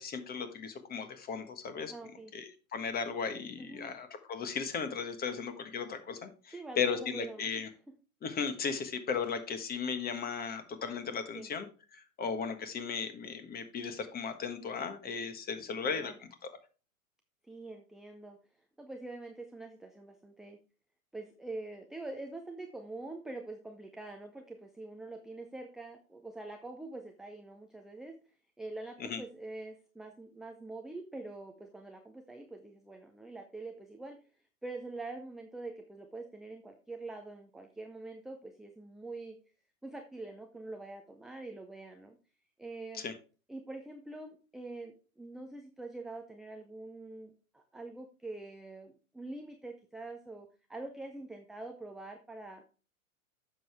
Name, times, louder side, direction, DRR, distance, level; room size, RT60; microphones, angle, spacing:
voice 1, 0.0-1.9 2.3-7.7 8.2-11.7 11.9-16.3 29.0-29.2 42.9-43.1, left 6 dB, 20° left, 9 dB, 1.4 m, -36 dB
voice 2, 1.9-2.3 3.6-3.9 6.5-7.6 11.3-11.5 15.7-16.2 17.4-18.4 18.8-20.6 21.1-28.1 28.6-34.2 34.6-39.4 39.8-42.2 42.6-43.0 43.5-52.8, right 2 dB, ahead, 3 dB, 0.4 m, -45 dB
9.9 x 6.9 x 3.4 m, 0.36 s
hypercardioid pair, 115°, 43 cm